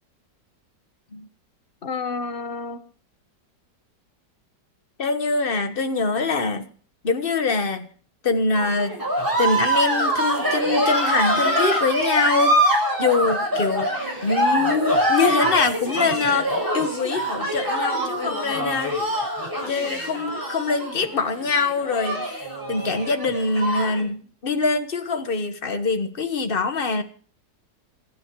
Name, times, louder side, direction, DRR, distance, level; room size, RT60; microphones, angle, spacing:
voice 1, 1.8-2.8 5.0-6.7 7.0-7.9 8.2-9.0 9.4-13.9 14.2-19.0 19.7-27.0, left 4 dB, 35° left, 7 dB, 1.5 m, -24 dB
sound 1, 8.5-24.0, right 1 dB, 10° right, 6.4 m, -24 dB
25.5 x 9.1 x 4.7 m, 0.44 s
omnidirectional pair, 1.9 m